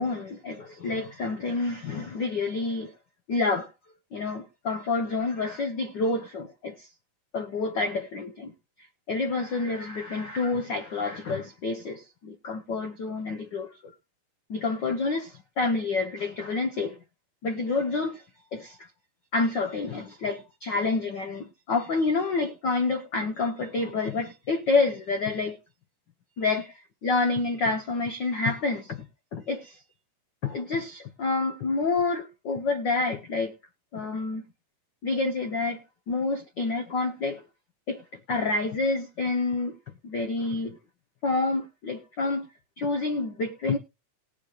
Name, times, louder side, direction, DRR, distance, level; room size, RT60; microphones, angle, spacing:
voice 1, 0.0-2.9 3.3-3.7 4.1-6.9 7.3-8.5 9.1-13.7 14.5-17.0 17.4-18.2 18.5-18.8 19.3-25.6 26.4-26.7 27.0-29.1 29.3-29.8 30.4-33.5 33.9-34.4 35.0-35.8 36.1-37.4 37.9-38.0 38.3-39.8 40.0-40.8 41.2-42.5 42.8-43.8, left 3 dB, 80° left, 1.0 m, -28 dB
20.0 x 7.0 x 2.5 m
omnidirectional pair, 3.6 m